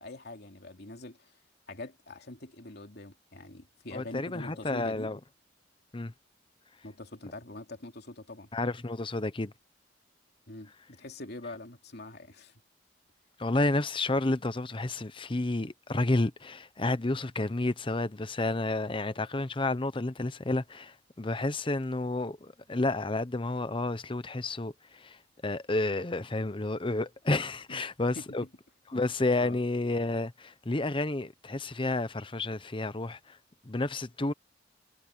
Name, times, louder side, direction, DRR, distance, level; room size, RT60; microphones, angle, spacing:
voice 1, 0.0-1.4 1.7-5.1 6.8-8.5 10.5-12.5 27.7-27.8 28.1-28.5 28.9-29.0 29.4-29.6, left 2 dB, 60° left, 2.9 m, -44 dB
voice 2, 3.9-5.2 5.9-6.1 8.5-9.5 13.4-25.2 25.4-28.4 28.9-33.2 33.6-34.3, left 2 dB, 25° left, 0.8 m, -30 dB
head